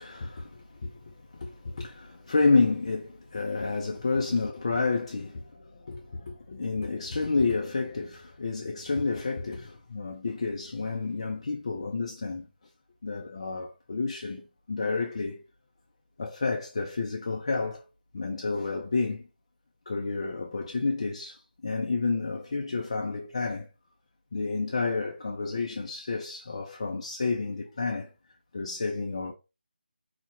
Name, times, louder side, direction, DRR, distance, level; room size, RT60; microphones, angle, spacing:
voice 1, 0.0-12.5 13.0-15.4 16.2-17.9 18.1-19.2 19.9-23.7 24.3-28.1 28.5-29.3, left 3 dB, 30° left, 0.3 m, -30 dB
4.3 x 2.1 x 2.7 m
figure-of-eight pair, 160°, 6 cm